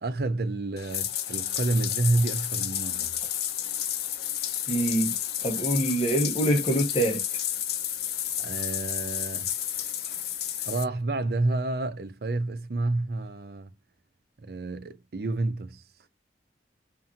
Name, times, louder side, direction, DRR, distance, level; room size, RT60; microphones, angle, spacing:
voice 1, 0.0-3.1 8.4-9.5 10.6-13.7 14.4-15.8, right 2 dB, 60° right, 0.5 m, -29 dB
Bathtub (filling or washing), 0.8-10.8, left 10 dB, 60° left, 0.5 m, -31 dB
voice 2, 4.7-7.2, right 1 dB, 30° left, 0.9 m, -25 dB
2.7 x 2.6 x 2.4 m
head